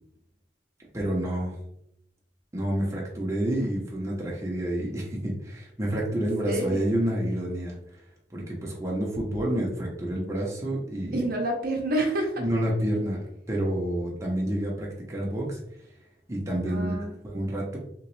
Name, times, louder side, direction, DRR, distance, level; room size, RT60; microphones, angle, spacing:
voice 1, 0.9-1.6 2.5-7.8 8.3-11.2 12.4-13.2 13.5-15.6 16.3-17.0 17.2-17.8, right 1 dB, 15° right, -3 dB, 0.7 m, -29 dB
voice 2, 6.5-6.9 11.1-12.4 16.7-17.1, right 1 dB, 55° right, 1 dB, 0.7 m, -28 dB
3.1 x 3.0 x 3.1 m, 0.75 s
head